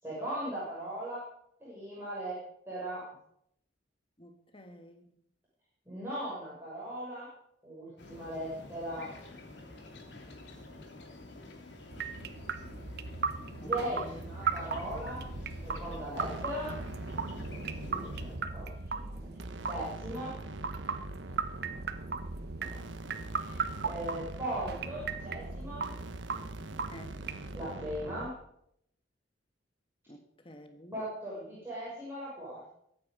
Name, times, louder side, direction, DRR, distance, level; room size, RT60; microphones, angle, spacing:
voice 1, 0.0-1.2 1.6-2.4 2.7-3.0 5.9-7.3 7.6-9.1 13.5-15.2 15.6-16.7 17.4-19.3 19.6-20.3 22.6-22.8 23.3-25.9 27.5-28.3 30.9-32.8, right 1 dB, 15° right, -9 dB, 6.5 m, -39 dB
voice 2, 4.2-5.1 13.6-14.2 17.9-18.1 19.3-19.4 26.9-27.1 30.1-31.0, left 1 dB, 30° left, 6 dB, 1.4 m, -50 dB
sound 1, 8.0-18.4, left 2 dB, 65° left, 3.1 m, -49 dB
sound 2, 11.9-27.7, right 5 dB, 60° right, 1.0 m, -38 dB
sound 3, 14.7-28.3, right 2 dB, 85° right, 1.3 m, -43 dB
22.5 x 9.5 x 5.3 m, 0.75 s
head